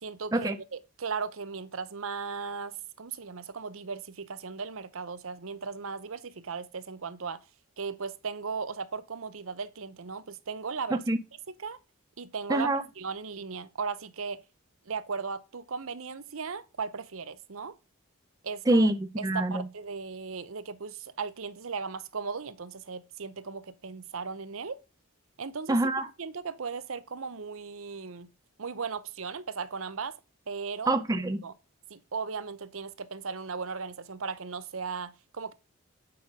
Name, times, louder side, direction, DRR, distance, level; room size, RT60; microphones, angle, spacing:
voice 1, 0.0-7.4 7.8-11.0 11.6-11.8 12.2-12.7 13.0-14.4 14.9-17.8 18.4-18.9 19.2-24.8 25.4-25.8 26.2-28.3 28.6-30.2 30.5-31.0 31.4-31.5 31.9-35.5, right 5 dB, 70° right, 0.8 m, -37 dB
voice 2, 12.5-12.8 18.7-19.6 25.7-26.1 30.9-31.4, right 2 dB, 15° right, 0.5 m, -25 dB
8.7 x 5.7 x 3.6 m
head